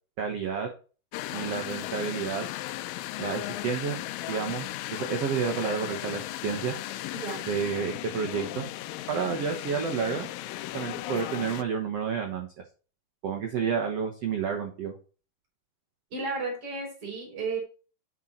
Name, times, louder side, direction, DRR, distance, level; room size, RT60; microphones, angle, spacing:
voice 1, 0.2-0.7 1.3-2.4 3.2-4.0 4.3-6.7 7.4-8.7 9.1-10.3 10.7-12.5 13.2-14.9, right 6 dB, 85° right, 3 dB, 1.3 m, -30 dB
sound 1, 1.1-11.6, left 15 dB, 90° left, 2.0 m, -36 dB
voice 2, 7.1-7.4 16.1-17.6, right 3 dB, 35° right, -1 dB, 5.5 m, -33 dB
8.2 x 6.3 x 4.2 m, 0.36 s
omnidirectional pair, 4.7 m